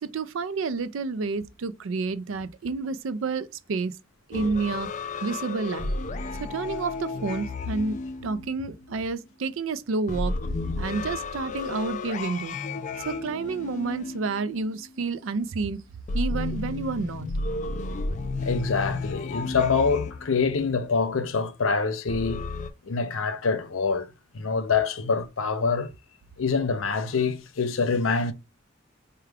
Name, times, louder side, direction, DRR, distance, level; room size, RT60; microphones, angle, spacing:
voice 1, 0.0-3.9 4.3-4.9 5.2-5.9 6.4-10.4 10.7-12.6 13.0-15.8 16.1-17.3, right 4 dB, 75° right, 0.4 m, -29 dB
sound 1, 4.3-8.9 10.1-14.9 16.1-20.7 22.1-22.7, left 3 dB, 35° left, 0.3 m, -32 dB
voice 2, 18.4-22.5 22.8-24.1 24.3-25.9 26.4-28.3, left 4 dB, 80° left, 0.6 m, -25 dB
4.7 x 2.2 x 3.3 m
head